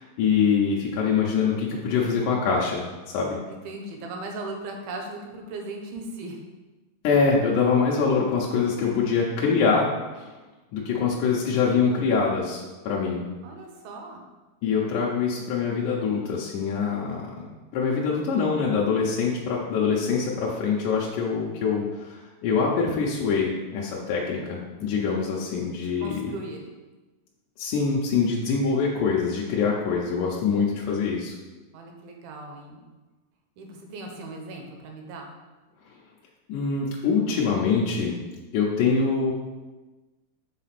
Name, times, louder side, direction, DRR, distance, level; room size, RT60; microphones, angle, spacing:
voice 1, 0.0-3.4 7.0-9.9 10.2-10.3 10.7-13.2 14.6-26.3 27.6-31.3 36.5-38.2 38.5-39.3, left 5 dB, 75° left, -4 dB, 1.8 m, -24 dB
voice 2, 3.5-6.4 13.4-14.2 25.8-26.6 31.7-32.8 33.6-35.3, right 2 dB, 75° right, 2 dB, 2.6 m, -38 dB
7.2 x 4.1 x 5.9 m, 1.2 s
omnidirectional pair, 4.6 m